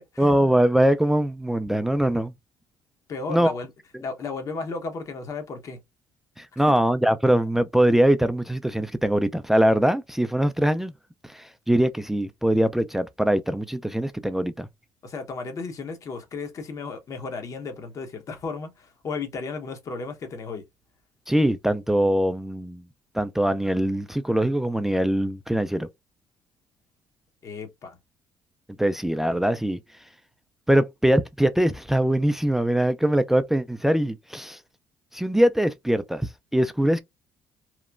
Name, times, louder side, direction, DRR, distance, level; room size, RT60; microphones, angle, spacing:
voice 1, 0.2-2.3 3.3-3.5 6.4-10.9 11.3-14.7 21.3-22.8 23.1-25.9 28.8-29.8 30.7-34.6 35.1-37.0, right 1 dB, 5° right, 0.3 m, -22 dB
voice 2, 3.1-3.7 4.0-5.8 15.0-20.6 27.4-28.0, left 4 dB, 50° left, 1.0 m, -34 dB
3.0 x 2.1 x 2.4 m
supercardioid pair, 85°, 7 cm